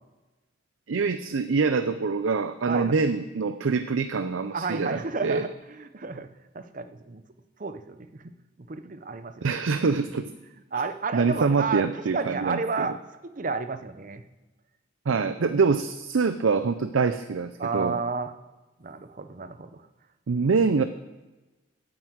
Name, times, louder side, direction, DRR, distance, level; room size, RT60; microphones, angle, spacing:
voice 1, 0.9-5.5 9.4-10.3 10.7-10.8 11.1-12.9 15.1-18.0 20.3-20.8, right 4 dB, 85° right, 11 dB, 0.5 m, -25 dB
voice 2, 4.5-6.3 6.5-7.2 7.6-8.2 8.6-9.6 10.7-11.8 12.1-12.9 13.4-14.2 15.1-15.2 17.6-18.3 18.8-19.9 20.4-20.5, right 4 dB, 40° right, 10 dB, 0.7 m, -31 dB
9.4 x 9.2 x 7.9 m, 1.1 s
head